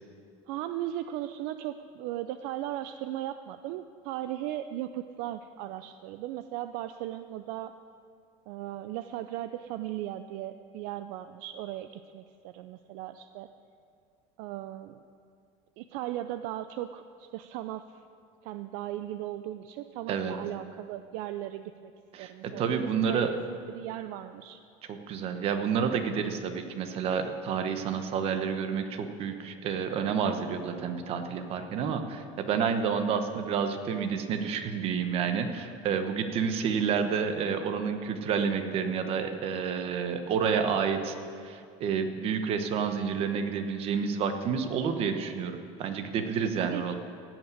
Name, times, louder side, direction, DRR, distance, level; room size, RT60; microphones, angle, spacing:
voice 1, 0.5-7.8 8.5-13.5 14.4-15.0 15.8-18.0 18.4-21.7 22.2-23.4 23.7-24.6 46.6-46.9, right 13 dB, 65° right, 10 dB, 0.5 m, -37 dB
voice 2, 22.1-23.3 24.9-41.2 41.4-47.0, right 6 dB, 40° right, 7 dB, 1.1 m, -29 dB
16.0 x 5.9 x 9.5 m, 2.4 s
cardioid pair, 155°, 15 cm